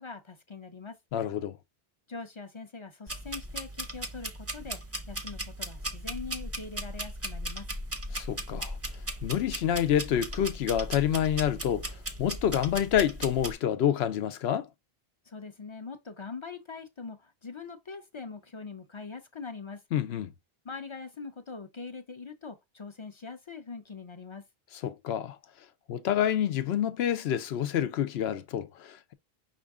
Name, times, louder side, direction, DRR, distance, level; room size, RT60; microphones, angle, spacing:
voice 1, 0.0-1.0 2.1-4.8 5.1-7.7 15.3-19.8 20.6-24.4, left 4 dB, 35° left, 0.5 m, -42 dB
voice 2, 1.1-1.6 8.1-8.8 9.2-14.7 19.9-20.3 24.8-25.4 25.9-29.1, left 10 dB, 85° left, 0.9 m, -28 dB
sound 1, 3.1-13.5, right 1 dB, 20° right, 0.5 m, -37 dB
5.9 x 2.5 x 3.6 m
omnidirectional pair, 1.0 m